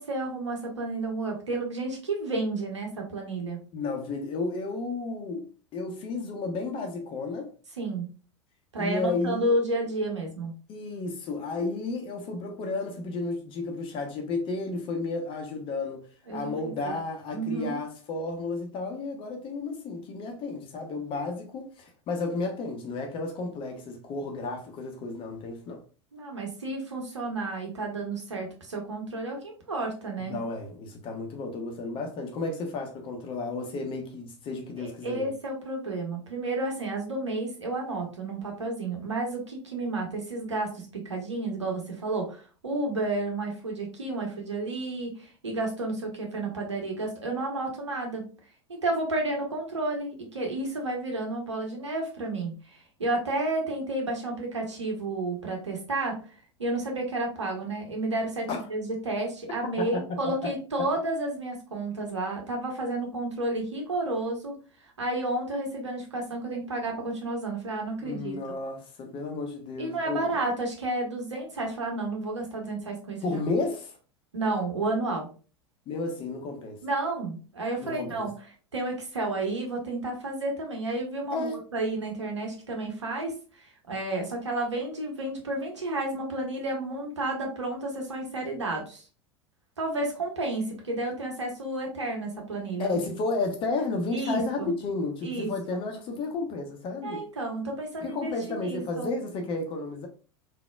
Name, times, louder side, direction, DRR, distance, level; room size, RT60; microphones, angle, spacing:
voice 1, 0.0-3.6 7.8-8.1 8.7-10.5 16.3-17.0 17.3-17.8 26.1-30.4 34.8-48.3 48.7-56.2 56.6-64.5 65.0-68.6 69.8-73.4 74.3-75.3 76.8-78.3 78.7-89.0 89.8-93.0 94.1-94.7 95.2-95.8 97.0-99.2, right 2 dB, 80° right, 1.0 m, -31 dB
voice 2, 3.7-7.5 8.8-9.8 10.7-16.1 16.3-25.8 30.2-35.3 58.5-58.7 59.9-60.0 60.4-60.5 68.0-70.4 73.2-74.0 75.9-76.8 77.8-78.3 81.3-81.6 92.8-97.2 98.0-100.1, left 3 dB, 35° left, 0.9 m, -32 dB
3.9 x 2.8 x 2.2 m
figure-of-eight pair, 85°, 15 cm